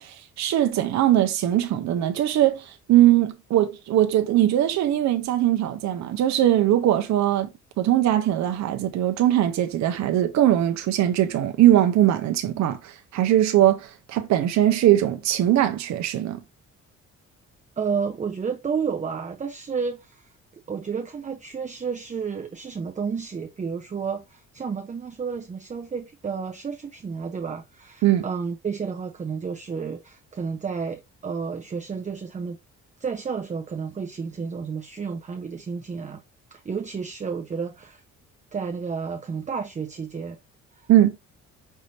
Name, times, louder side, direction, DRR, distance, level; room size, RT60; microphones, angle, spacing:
voice 1, 0.0-7.5 7.8-16.4 28.0-28.2 40.9-41.2, right 12 dB, 65° right, 0.6 m, -21 dB
voice 2, 17.8-20.3 20.7-32.6 33.0-36.2 36.5-38.0 38.5-40.4, right 5 dB, 25° right, 0.6 m, -31 dB
5.5 x 2.6 x 3.2 m
cardioid pair, 90°, 30 cm